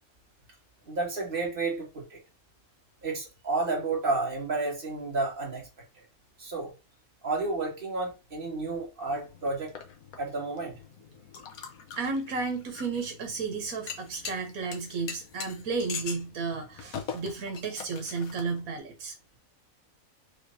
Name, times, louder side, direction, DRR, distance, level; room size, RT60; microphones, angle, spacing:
voice 1, 0.9-2.2 3.0-5.7 6.4-6.7 7.2-9.7 10.2-10.7, right 3 dB, 40° right, 2.1 m, -31 dB
sound 1, 9.1-18.8, left 6 dB, 85° left, 1.4 m, -43 dB
voice 2, 12.0-19.1, right 4 dB, 85° right, 1.4 m, -33 dB
5.0 x 3.4 x 2.6 m
omnidirectional pair, 1.5 m